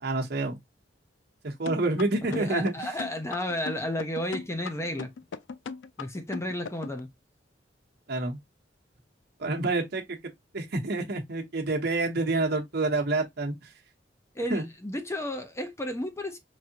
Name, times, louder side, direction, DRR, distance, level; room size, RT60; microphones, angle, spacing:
voice 1, 0.0-0.6 1.4-2.7 8.1-8.4 9.4-13.5 14.5-14.7, right 2 dB, 60° right, 0.9 m, -28 dB
sound 1, 1.7-7.0, left 5 dB, 80° left, 0.4 m, -37 dB
voice 2, 2.3-5.1 6.0-7.1 14.3-16.4, left 1 dB, 15° left, 0.6 m, -32 dB
4.8 x 2.7 x 2.7 m
head